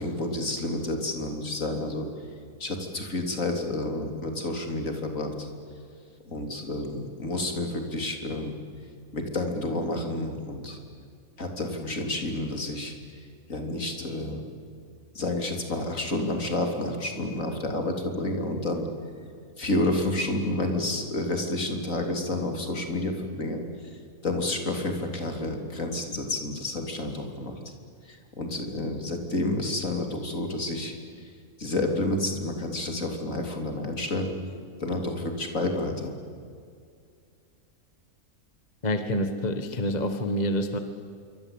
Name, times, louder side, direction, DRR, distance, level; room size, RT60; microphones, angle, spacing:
voice 1, 0.0-2.1 2.6-5.5 6.3-8.5 9.1-10.8 11.4-12.9 13.5-14.4 15.2-18.9 19.6-23.6 24.2-27.5 28.1-30.9 31.6-34.3 34.8-36.1, left 2 dB, 60° left, 4 dB, 3.6 m, -30 dB
voice 2, 38.8-40.8, equal, 30° left, 7 dB, 1.6 m, -27 dB
27.0 x 24.5 x 8.9 m, 2.2 s
omnidirectional pair, 1.5 m